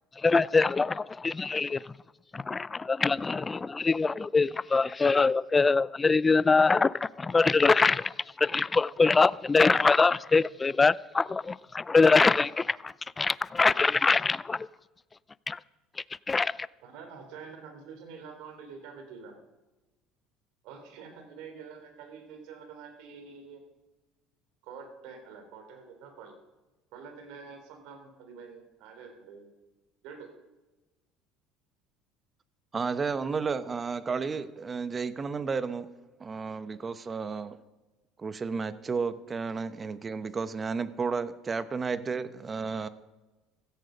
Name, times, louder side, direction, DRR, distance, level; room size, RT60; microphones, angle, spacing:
voice 1, 0.2-1.9 2.3-14.7 15.5-15.6 16.3-16.7, left 4 dB, 20° left, 0.4 m, -24 dB
voice 2, 16.8-19.4 20.6-23.6 24.6-26.3 26.9-29.5 30.0-30.3, right 5 dB, 70° right, 3.8 m, -46 dB
voice 3, 32.7-35.9 36.2-37.6 38.2-42.9, right 5 dB, 25° right, 1.0 m, -32 dB
16.5 x 14.0 x 5.3 m
supercardioid pair, 95°, 0 cm